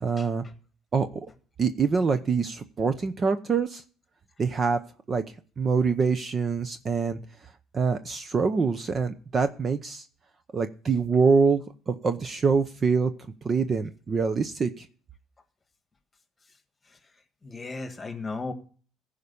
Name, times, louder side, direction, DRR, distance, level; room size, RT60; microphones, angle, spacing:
voice 1, 0.0-0.4 0.9-1.1 1.6-3.8 4.4-4.8 5.1-5.2 5.6-7.2 7.7-10.1 10.5-13.1 13.4-14.9, right 5 dB, 30° right, 10 dB, 0.7 m, -25 dB
voice 2, 17.4-18.5, left 3 dB, 15° left, 8 dB, 1.6 m, -35 dB
15.0 x 5.1 x 6.9 m, 0.41 s
cardioid pair, 130°, 0 cm